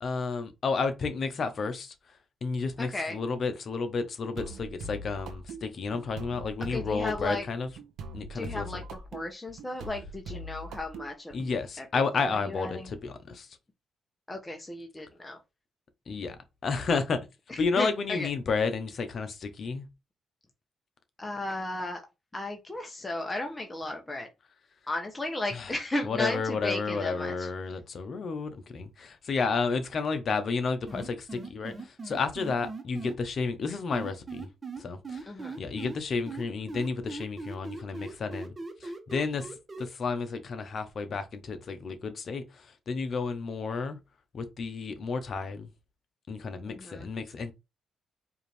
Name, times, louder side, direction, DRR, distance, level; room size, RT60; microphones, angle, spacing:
voice 1, 0.0-1.9 2.4-7.7 8.1-8.8 11.3-13.5 16.1-16.4 16.6-17.2 17.6-19.9 25.5-25.7 26.0-34.5 34.8-35.3 35.6-38.5 38.8-44.0 44.3-45.7 46.3-47.5, left 4 dB, 55° left, 0.8 m, -31 dB
voice 2, 2.8-3.2 6.7-7.5 8.3-11.3 11.8-12.0 12.3-12.9 14.3-15.4 17.5-18.3 21.2-22.0 22.3-24.3 24.9-27.5 35.3-35.6 46.7-47.1, left 2 dB, 15° left, 0.9 m, -35 dB
sound 1, 4.4-11.5, right 1 dB, 80° right, 0.8 m, -42 dB
sound 2, 30.9-33.1 33.9-36.0 36.3-39.8, right 3 dB, 30° right, 1.1 m, -39 dB
4.8 x 2.7 x 3.3 m
cardioid pair, 85°, 0 cm